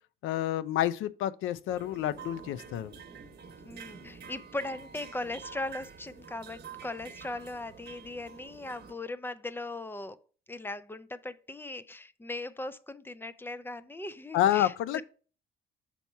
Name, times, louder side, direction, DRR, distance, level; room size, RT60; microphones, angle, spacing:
voice 1, 0.2-3.0 14.3-15.0, left 12 dB, 85° left, 0.5 m, -29 dB
sound 1, 1.7-8.9, right 6 dB, 55° right, 1.0 m, -48 dB
voice 2, 3.6-10.2 10.5-15.0, left 2 dB, 10° left, 0.4 m, -39 dB
6.0 x 4.1 x 4.5 m
cardioid pair, 90°, 20 cm